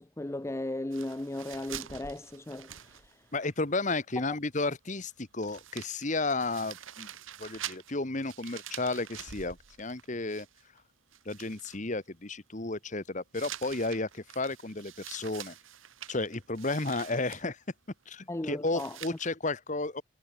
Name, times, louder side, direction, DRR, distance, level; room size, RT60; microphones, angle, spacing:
voice 1, 0.0-3.3 18.3-19.0, left 1 dB, 15° left, 0.4 m, -36 dB
sound 1, 0.9-3.5 3.8-3.9 5.1-5.2 5.4-10.8 11.1-11.8 13.3-17.4 18.7-19.3, right 10 dB, 75° right, 1.5 m, -46 dB
voice 2, 3.3-7.1 7.4-10.5 11.2-15.5 16.1-17.6 18.1-20.0, left 2 dB, 35° left, 1.4 m, -33 dB
head